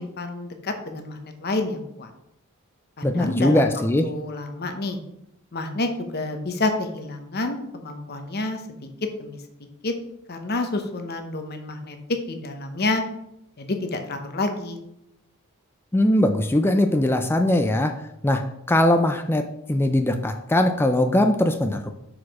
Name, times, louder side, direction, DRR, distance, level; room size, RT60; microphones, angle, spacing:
voice 1, 0.0-2.1 3.0-3.7 4.0-5.0 5.5-8.6 9.2-9.4 9.8-9.9 10.3-13.0 13.6-14.8, left 2 dB, 50° left, 6 dB, 0.9 m, -28 dB
voice 2, 3.0-4.1 15.9-18.0 18.2-21.9, left 1 dB, 10° left, 6 dB, 0.4 m, -21 dB
6.1 x 4.9 x 4.8 m, 0.81 s
head